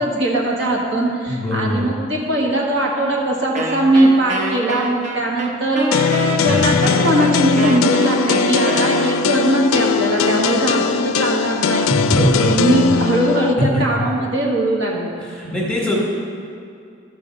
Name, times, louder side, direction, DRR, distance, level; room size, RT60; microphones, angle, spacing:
voice 1, 0.0-11.9 12.5-15.2, right 1 dB, 60° right, -2 dB, 1.4 m, -20 dB
voice 2, 1.3-1.9 6.5-6.9 11.9-13.1 15.2-16.0, left 1 dB, 5° left, -4 dB, 1.8 m, -21 dB
Wind instrument woodwind instrument, 3.5-9.6, right 1 dB, 35° right, 0.9 m, -26 dB
sound 1, 5.9-13.5, left 6 dB, 90° left, 0.4 m, -19 dB
13.0 x 4.7 x 6.4 m, 2.4 s
head